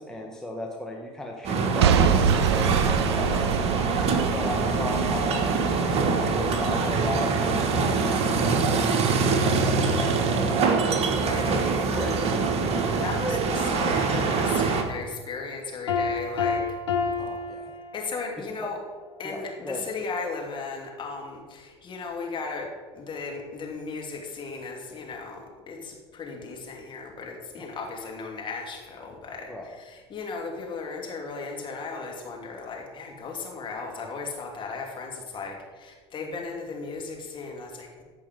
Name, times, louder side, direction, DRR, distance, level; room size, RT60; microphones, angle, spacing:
voice 1, 0.0-3.5 4.1-10.8 11.9-12.9 17.2-17.7 18.6-18.7 19.2-19.9 27.6-27.7 29.5-29.7, left 1 dB, 5° left, -1 dB, 1.3 m, -36 dB
sound 1, 1.4-14.8, right 4 dB, 45° right, 1.4 m, -24 dB
Boom / Shatter / Crushing, 1.8-5.8 6.3-6.4, right 8 dB, 75° right, 0.5 m, -25 dB
voice 2, 10.8-11.8 13.0-16.6 17.9-18.8 19.2-22.7 22.9-38.0, left 4 dB, 35° left, 0 dB, 2.7 m, -36 dB
Piano, 15.9-18.4, left 5 dB, 80° left, 1.3 m, -29 dB
14.0 x 5.3 x 5.3 m, 1.5 s
hypercardioid pair, 75°, 14 cm